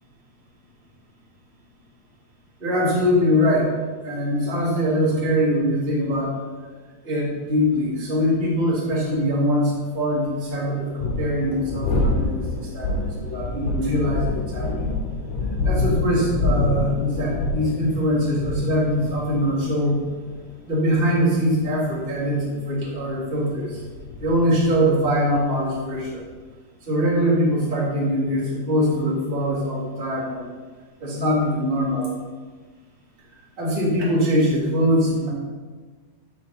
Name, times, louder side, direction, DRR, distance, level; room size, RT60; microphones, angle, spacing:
voice 1, 2.6-3.7 4.0-6.4 7.0-12.5 12.7-15.0 15.6-20.1 20.7-23.8 24.2-26.2 26.9-30.5 31.0-32.1 33.6-35.3, equal, 15° right, -6 dB, 2.8 m, -22 dB
sound 1, 8.6-8.7 10.8-26.4, left 2 dB, 70° left, 4.4 m, -27 dB
14.5 x 7.3 x 4.4 m, 1.4 s
omnidirectional pair, 5.0 m